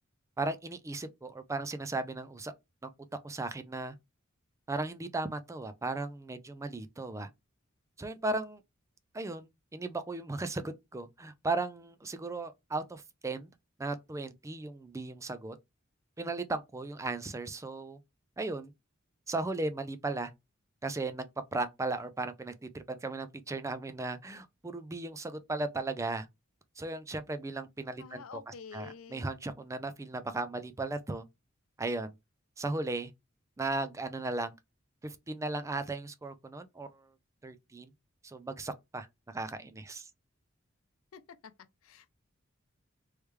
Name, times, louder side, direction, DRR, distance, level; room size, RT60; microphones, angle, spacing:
voice 1, 0.4-2.5 2.8-2.9 3.2-3.9 4.7-7.3 8.0-8.6 9.1-13.5 13.8-15.6 16.2-18.0 18.4-18.7 19.3-20.3 20.8-21.3 21.5-26.3 26.8-31.2 31.8-32.1 32.6-33.1 33.6-34.5 35.0-37.1 37.4-37.9 38.2-39.1 39.3-40.1, right 2 dB, 15° right, 0.4 m, -36 dB
voice 2, 28.0-29.3 41.1-41.5 41.8-42.1, left 6 dB, 90° left, 0.5 m, -48 dB
3.3 x 3.2 x 3.2 m
head